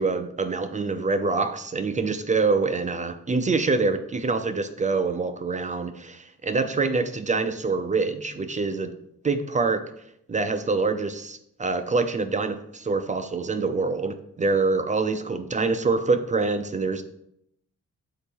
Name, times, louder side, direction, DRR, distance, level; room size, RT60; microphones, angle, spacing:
voice 1, 0.0-8.9 9.2-9.9 10.3-17.0, right 4 dB, 25° right, 8 dB, 0.6 m, -25 dB
6.9 x 4.0 x 4.5 m, 0.76 s
cardioid pair, 90°, 30 cm